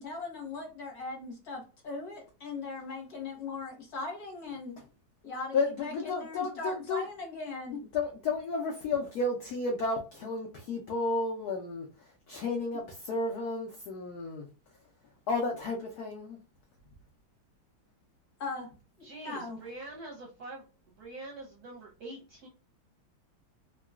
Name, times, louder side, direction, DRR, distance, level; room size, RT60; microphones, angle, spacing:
voice 1, 0.0-4.8 5.2-7.8 18.4-18.7 19.0-19.6, left 3 dB, 55° left, 1.3 m, -39 dB
voice 2, 5.5-7.0 7.9-14.5 15.3-16.4, left 3 dB, 80° left, 0.8 m, -32 dB
voice 3, 19.0-20.7 21.0-22.5, right 2 dB, 65° right, 1.0 m, -44 dB
3.7 x 2.2 x 2.3 m
omnidirectional pair, 2.4 m